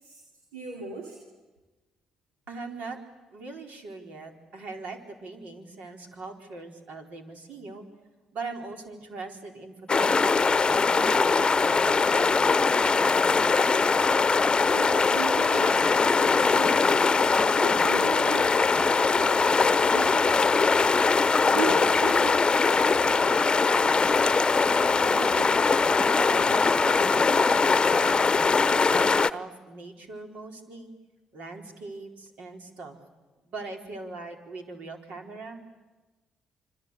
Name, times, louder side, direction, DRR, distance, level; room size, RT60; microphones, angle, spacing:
voice 1, 0.5-1.2 14.6-17.0 17.6-20.7 21.4-23.2, right 4 dB, 85° right, 2 dB, 2.5 m, -37 dB
voice 2, 2.5-3.0 3.3-7.9 8.3-10.6 10.9-13.5 24.6-25.7 26.2-28.3 28.6-30.9 31.3-33.0 33.4-35.7, right 3 dB, 65° right, 3 dB, 4.2 m, -40 dB
sound 1, 9.9-29.3, left 4 dB, 35° left, 0.9 m, -22 dB
26.5 x 26.0 x 8.3 m, 1.2 s
hypercardioid pair, 45°, 3 cm